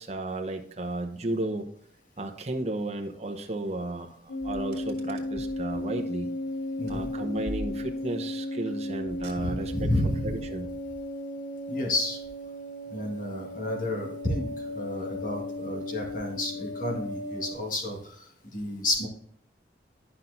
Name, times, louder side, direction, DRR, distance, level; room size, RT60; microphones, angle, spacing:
voice 1, 0.0-1.7 2.2-6.3 6.9-9.9 10.2-10.7, right 2 dB, 35° right, 3 dB, 0.9 m, -33 dB
sound 1, 4.3-17.6, left 1 dB, 85° left, 0.7 m, -35 dB
Car, 4.4-5.6 6.9-8.2 9.0-9.9, right 1 dB, 60° right, 2.1 m, -42 dB
voice 2, 6.8-7.1 9.3-10.3 11.7-12.2 12.9-14.5 14.7-19.1, left 1 dB, 45° left, 0 dB, 1.9 m, -31 dB
11.5 x 5.8 x 2.7 m, 0.64 s
head